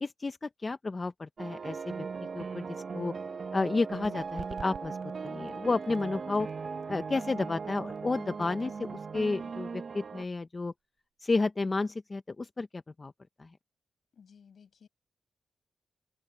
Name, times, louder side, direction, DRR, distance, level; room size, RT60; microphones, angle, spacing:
voice 1, 0.0-2.1 2.3-3.1 3.5-6.5 6.9-10.7 11.2-13.1 13.4-13.5, left 3 dB, 25° left, 0.6 m, -32 dB
sound 1, 1.4-10.2, right 5 dB, 45° right, 0.6 m, -38 dB
sound 2, 3.9-11.2, right 7 dB, 65° right, 5.6 m, -53 dB
voice 2, 14.1-14.9, left 6 dB, 60° left, 6.1 m, -57 dB
wide cardioid pair, 115°, 0 cm